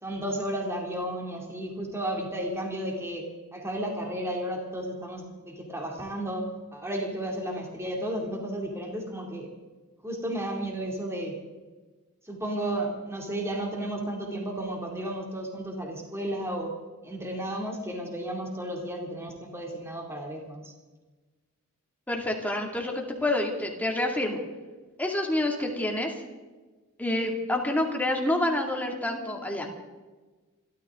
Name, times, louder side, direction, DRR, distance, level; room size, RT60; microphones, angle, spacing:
voice 1, 0.0-3.2 3.5-6.4 6.7-9.5 10.0-11.3 12.2-16.7 17.0-20.7, right 1 dB, 10° right, 0 dB, 2.6 m, -33 dB
voice 2, 22.1-24.4 25.0-26.1 27.0-29.7, left 1 dB, 5° left, 1 dB, 2.3 m, -28 dB
26.5 x 13.0 x 3.7 m, 1.3 s
head